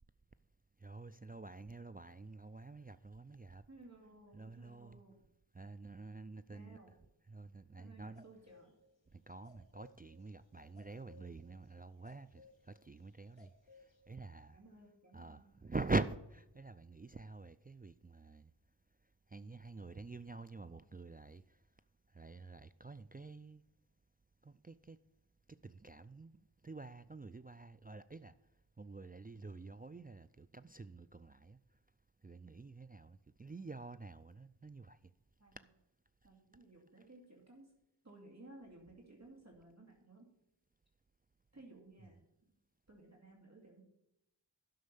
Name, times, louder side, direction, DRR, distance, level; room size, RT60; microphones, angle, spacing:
voice 1, 0.8-3.7 4.3-5.0 5.5-6.8 7.3-8.2 9.1-14.6 15.1-18.5 19.3-21.7 22.1-23.6 24.4-25.0 25.5-28.4 28.8-31.8 32.2-35.1 35.5-35.6, right 3 dB, 20° right, 0.4 m, -46 dB
voice 2, 3.7-5.2 6.5-6.9 7.8-8.7 14.5-15.5 35.4-35.6 36.2-37.7 38.0-40.3 41.5-42.5 42.9-43.8, right 2 dB, 35° right, 2.5 m, -58 dB
sound 1, 8.1-8.8 9.0-9.1 9.3-14.0, left 4 dB, 85° left, 2.1 m, -62 dB
11.5 x 6.4 x 6.9 m
wide cardioid pair, 45°, 44 cm